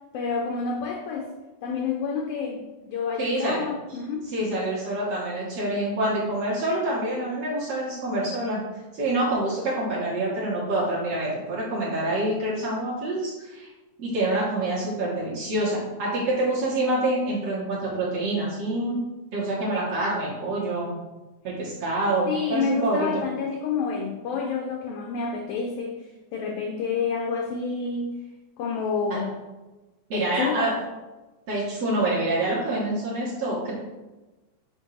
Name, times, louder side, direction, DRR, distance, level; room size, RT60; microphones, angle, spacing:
voice 1, 0.1-1.3 1.6-4.2 22.3-28.1 28.6-29.4 30.1-30.8, left 5 dB, 85° left, 2 dB, 1.4 m, -29 dB
voice 2, 3.2-3.6 4.2-8.6 8.9-13.7 14.0-19.0 19.3-20.9 21.4-23.2 29.1-29.2 30.1-30.7 31.5-33.7, right 1 dB, 60° right, -7 dB, 2.4 m, -26 dB
7.0 x 2.6 x 5.4 m, 1.1 s
omnidirectional pair, 3.4 m